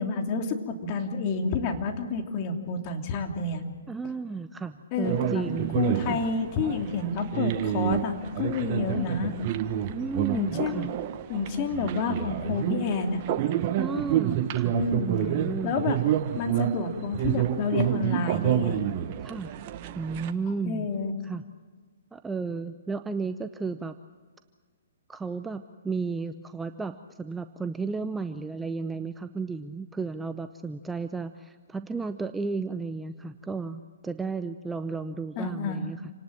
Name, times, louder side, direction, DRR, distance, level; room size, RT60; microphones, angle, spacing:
voice 1, 0.0-3.6 4.9-5.4 5.7-9.3 10.3-10.9 11.3-13.2 14.7-15.1 15.6-16.0 16.4-18.8 20.6-21.1 35.4-35.8, left 4 dB, 35° left, 4 dB, 2.9 m, -29 dB
voice 2, 3.9-6.2 8.9-9.1 9.8-10.9 13.8-14.8 15.1-15.7 19.2-19.6 20.0-20.9 21.2-21.4 22.1-23.9 25.1-36.1, right 4 dB, 10° right, 10 dB, 0.7 m, -33 dB
sound 1, 5.0-20.3, right 11 dB, 40° right, 1.3 m, -29 dB
28.5 x 19.0 x 7.5 m, 1.5 s
figure-of-eight pair, 130°, 0 cm